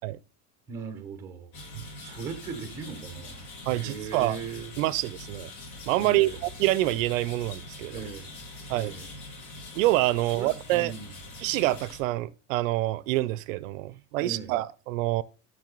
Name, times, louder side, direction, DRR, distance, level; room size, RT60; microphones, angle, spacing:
voice 1, 0.7-1.5 2.0-4.7 6.0-6.4 7.9-8.3 8.7-9.1 10.2-11.1 14.2-14.5, right 5 dB, 5° right, 0.4 m, -39 dB
sound 1, 1.5-12.0, left 2 dB, 70° left, 2.7 m, -43 dB
voice 2, 3.7-4.4 4.8-5.5 5.9-8.0 8.7-8.9 9.7-10.9 11.4-15.2, right 17 dB, 60° right, 0.5 m, -26 dB
7.5 x 6.1 x 3.7 m
supercardioid pair, 160°, 44 cm